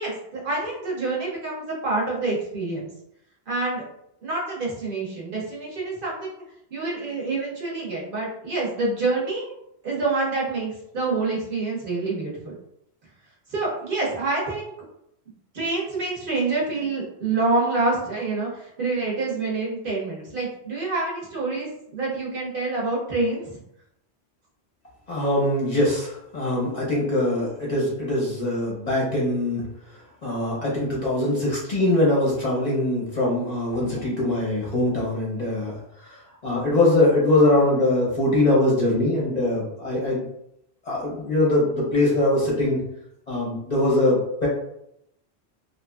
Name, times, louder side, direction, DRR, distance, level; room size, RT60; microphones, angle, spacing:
voice 1, 0.0-2.9 3.5-3.8 4.2-6.3 6.7-9.5 9.8-12.5 13.5-14.6 15.5-23.6, right 3 dB, 55° right, -4 dB, 0.9 m, -27 dB
voice 2, 25.1-29.7 30.2-35.7 36.0-36.2 36.4-40.3 40.9-42.8 43.3-44.5, left 1 dB, 45° left, -4 dB, 0.7 m, -22 dB
2.8 x 2.5 x 2.2 m, 0.78 s
omnidirectional pair, 1.1 m